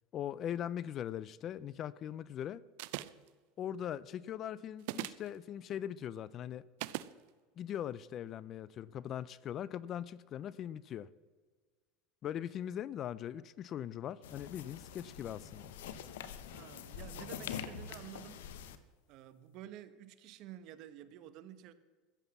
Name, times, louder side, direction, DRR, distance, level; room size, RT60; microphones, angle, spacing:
voice 1, 0.1-2.6 3.6-6.6 7.6-11.1 12.2-15.7, left 10 dB, 40° left, 0.4 m, -40 dB
sound 1, 2.8-3.3 4.8-5.3 6.8-7.1, right 17 dB, 70° right, 0.5 m, -39 dB
sound 2, 14.2-18.8, left 8 dB, 90° left, 0.9 m, -45 dB
voice 2, 16.5-18.7 19.1-21.7, right 12 dB, 55° right, 1.0 m, -51 dB
14.5 x 8.0 x 7.1 m
supercardioid pair, 125°, 0 cm